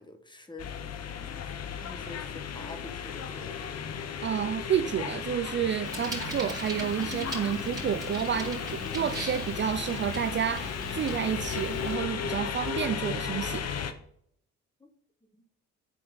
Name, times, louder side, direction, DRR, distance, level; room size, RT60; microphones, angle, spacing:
voice 1, 0.0-1.4 1.7-4.1 14.8-14.9 15.3-15.4, left 2 dB, 15° left, 1.4 m, -48 dB
sound 1, 0.6-13.9, left 7 dB, 55° left, 0.9 m, -35 dB
voice 2, 4.2-13.7, right 8 dB, 40° right, 0.4 m, -30 dB
Bicycle, 5.8-11.9, right 2 dB, 10° right, 3.6 m, -40 dB
10.0 x 4.5 x 4.0 m
cardioid pair, 90°, 30 cm